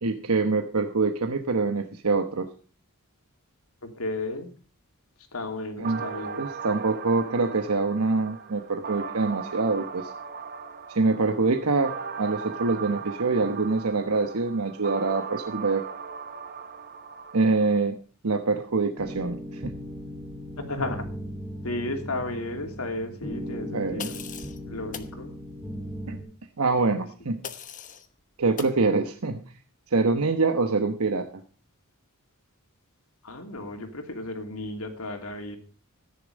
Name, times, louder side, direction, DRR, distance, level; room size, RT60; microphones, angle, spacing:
voice 1, 0.0-2.5 5.8-6.0 6.4-10.1 10.9-15.8 17.3-18.0 18.2-19.7 23.7-24.1 26.1-26.2 26.6-27.4 28.4-29.4 29.9-31.3, right 3 dB, 80° right, 6 dB, 1.1 m, -25 dB
voice 2, 4.0-4.5 5.3-6.4 20.6-21.0 21.6-24.2 24.7-25.3 26.8-27.0 33.2-35.6, left 2 dB, 75° left, 5 dB, 2.9 m, -33 dB
sound 1, 5.8-17.8, right 6 dB, 45° right, 1.1 m, -38 dB
sound 2, 19.0-26.2, equal, 5° left, 3.7 m, -38 dB
sound 3, 24.0-24.6 24.9-25.1 27.4-28.1 28.6-28.8, left 7 dB, 35° left, 1.0 m, -39 dB
14.5 x 10.0 x 5.2 m, 0.38 s
head